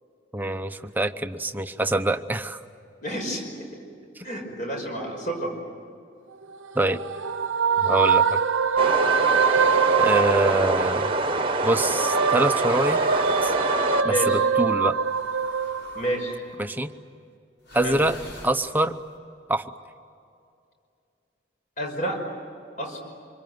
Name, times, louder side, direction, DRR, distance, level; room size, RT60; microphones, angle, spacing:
voice 1, 0.3-2.6 4.2-4.3 6.7-7.0 7.8-8.4 10.0-11.1 11.6-13.0 13.4-13.5 14.0-15.0 16.6-16.9 17.7-18.2 18.4-19.0 19.5-19.6, right 1 dB, 10° right, 8 dB, 0.8 m, -25 dB
voice 2, 3.0-3.7 4.2-5.6 10.1-10.4 14.0-14.4 15.9-16.4 17.8-18.0 21.8-22.2 22.8-23.0, right 1 dB, 40° left, 2 dB, 5.5 m, -30 dB
sound 1, 6.3-11.3 11.7-16.4, right 6 dB, 85° right, 0.9 m, -24 dB
sound 2, 8.6-9.2 10.2-11.4 12.4-13.7 15.0-16.5 17.6-19.0, left 1 dB, 75° left, 6.0 m, -46 dB
sound 3, 8.8-14.0, right 3 dB, 25° right, 1.2 m, -25 dB
26.5 x 24.0 x 9.5 m, 2.5 s
head